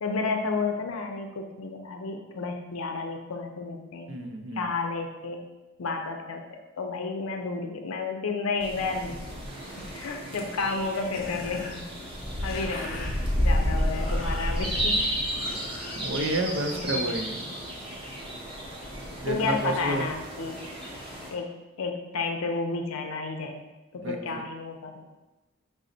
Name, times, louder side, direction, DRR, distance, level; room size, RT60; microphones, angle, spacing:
voice 1, 0.0-4.1 4.5-5.4 5.8-9.2 9.8-11.9 12.4-13.1 13.4-15.0 16.7-17.1 19.3-20.6 21.3-21.5 21.8-23.6 23.9-25.1, left 4 dB, 90° left, 4 dB, 0.5 m, -31 dB
voice 2, 4.1-4.7 15.9-17.5 19.2-20.1 24.0-24.4, right 1 dB, 60° right, 4 dB, 0.4 m, -30 dB
sound 1, 8.6-21.3, equal, 25° right, 0.7 m, -31 dB
sound 2, 11.1-17.0, left 2 dB, 40° left, 0.5 m, -43 dB
5.0 x 2.0 x 3.8 m, 1.1 s
head